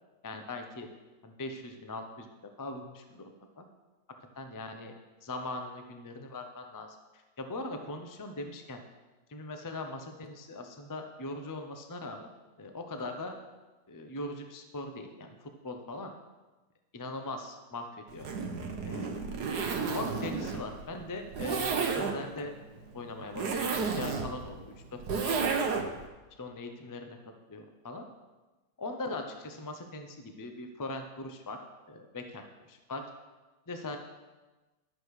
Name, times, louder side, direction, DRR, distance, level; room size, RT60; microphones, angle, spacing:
voice 1, 0.2-0.9 1.2-2.3 2.6-3.3 3.6-3.7 4.3-4.9 5.2-7.0 7.4-8.8 9.3-12.3 12.6-13.3 13.9-16.1 16.9-18.3 18.9-19.2 19.9-22.5 22.9-25.0 25.2-25.5 26.4-27.2 27.5-28.0 28.8-31.6 31.9-33.0 33.7-34.0, left 2 dB, 30° left, 5 dB, 0.3 m, -40 dB
Zipper (clothing), 18.1-26.1, right 5 dB, 65° right, 1.4 m, -32 dB
11.0 x 7.7 x 4.9 m, 1.2 s
omnidirectional pair, 2.0 m